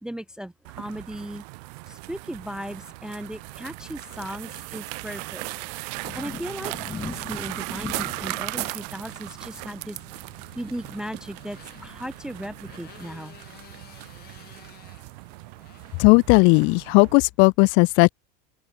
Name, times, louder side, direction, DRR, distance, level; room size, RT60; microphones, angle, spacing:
voice 1, 0.0-1.4 1.9-5.5 6.1-6.7 7.0-10.0 10.6-13.4, equal, 5° right, 0.4 m, -36 dB
sound 1, 0.6-17.1, right 28 dB, 70° right, 0.5 m, -38 dB
sound 2, 2.7-17.3, left 6 dB, 20° left, 1.8 m, -45 dB
Motorcycle, 10.0-16.7, left 14 dB, 45° left, 3.3 m, -53 dB
voice 2, 16.0-18.1, left 32 dB, 60° left, 0.7 m, -16 dB
open air
supercardioid pair, 110°, 21 cm